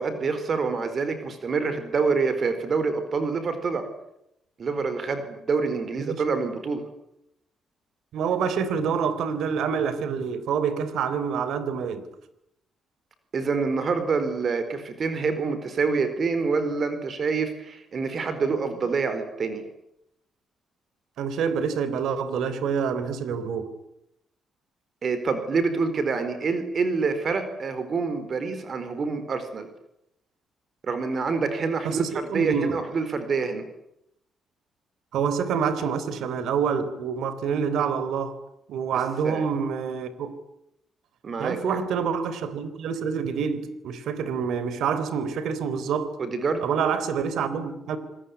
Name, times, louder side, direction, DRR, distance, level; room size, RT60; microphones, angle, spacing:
voice 1, 0.0-3.9 4.6-6.8 13.3-19.6 25.0-29.7 30.8-33.6 38.9-39.5 41.2-41.8 46.2-46.6, right 4 dB, 45° right, 4.5 m, -26 dB
voice 2, 8.1-12.0 21.2-23.7 31.8-32.8 35.1-38.4 38.7-40.4 41.4-46.2 46.6-48.0, right 6 dB, 80° right, 3.7 m, -27 dB
28.0 x 20.5 x 9.9 m
cardioid pair, 125°, 0 cm